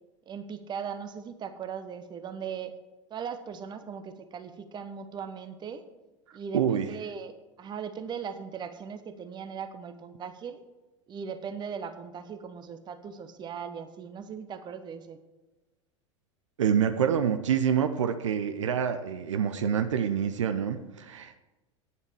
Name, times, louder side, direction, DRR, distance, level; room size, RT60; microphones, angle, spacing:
voice 1, 0.3-2.7 3.1-5.8 6.3-10.6 11.1-15.2, right 7 dB, 25° right, 10 dB, 1.0 m, -39 dB
voice 2, 6.5-6.9 16.6-21.4, right 8 dB, 70° right, 9 dB, 0.7 m, -27 dB
9.5 x 8.3 x 4.9 m, 1.1 s
figure-of-eight pair, 85°, 16 cm